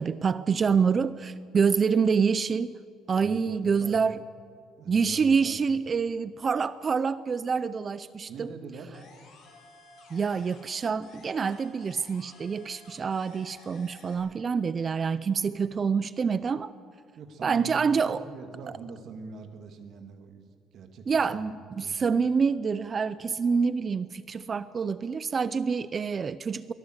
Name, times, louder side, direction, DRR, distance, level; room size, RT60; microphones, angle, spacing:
voice 1, 0.0-2.7 3.1-4.2 4.9-8.5 10.1-16.7 17.4-18.3 21.1-26.7, right 5 dB, 30° right, 15 dB, 0.5 m, -27 dB
voice 2, 3.2-4.0 4.8-5.6 8.3-8.9 17.1-21.4 21.8-22.2, right 5 dB, 55° right, 5 dB, 2.4 m, -43 dB
sound 1, 8.9-10.8 11.0-14.1, left 3 dB, 60° left, 5.8 m, -53 dB
23.0 x 17.5 x 8.0 m, 2.1 s
cardioid pair, 155°, 0 cm